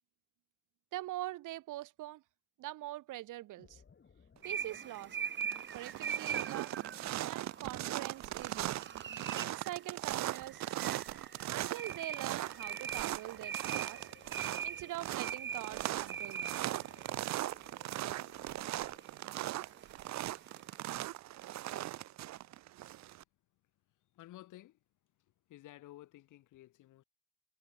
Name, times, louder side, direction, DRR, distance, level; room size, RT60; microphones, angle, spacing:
voice 1, 0.9-2.2 2.6-3.8 4.4-5.2 5.7-6.7 7.3-8.8 9.4-10.7 11.5-14.1 14.6-16.6, right 16 dB, 85° right, 1.9 m, -44 dB
sound 1, 3.6-19.0, left 5 dB, 40° left, 5.8 m, -65 dB
sound 2, 4.4-21.0, right 7 dB, 40° right, 1.2 m, -43 dB
sound 3, 4.7-5.0 5.4-23.2, right 14 dB, 65° right, 0.6 m, -39 dB
voice 2, 23.9-24.8 25.1-27.0, left 15 dB, 85° left, 2.8 m, -55 dB
cardioid pair, 90°, 30 cm